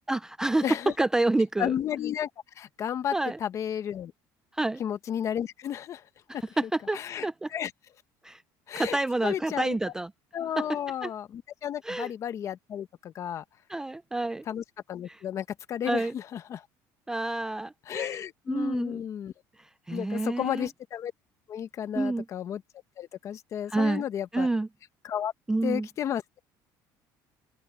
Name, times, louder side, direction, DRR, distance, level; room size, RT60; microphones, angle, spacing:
voice 1, 0.1-0.6 1.0-1.7 3.1-3.4 4.5-4.8 6.6-7.5 8.2-8.4 8.7-10.1 11.0-11.1 11.8-12.1 13.7-14.4 15.1-15.2 15.9-16.1 17.1-18.2 18.5-19.0 19.9-20.7 22.0-22.3 23.7-24.0 24.3-24.7 25.5-25.9, right 2 dB, 5° right, 0.3 m, -28 dB
voice 2, 0.6-0.9 1.6-2.3 2.6-4.1 4.8-6.0 6.3-7.7 8.7-9.0 9.2-9.8 10.3-13.4 14.5-16.6 17.9-19.3 19.9-21.1 21.5-22.6 23.0-24.5 25.0-25.3 25.6-26.4, left 9 dB, 40° left, 1.0 m, -33 dB
open air
cardioid pair, 155°, 8 cm